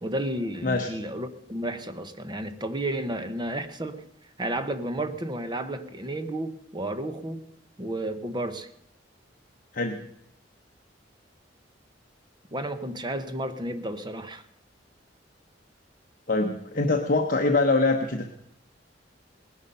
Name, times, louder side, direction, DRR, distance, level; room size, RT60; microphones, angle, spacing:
voice 1, 0.0-4.0 4.4-7.5 7.8-8.7 12.5-14.4, right 1 dB, 25° right, 9 dB, 1.0 m, -32 dB
voice 2, 16.3-18.3, left 3 dB, 50° left, 4 dB, 0.9 m, -24 dB
19.0 x 11.0 x 5.4 m, 0.77 s
head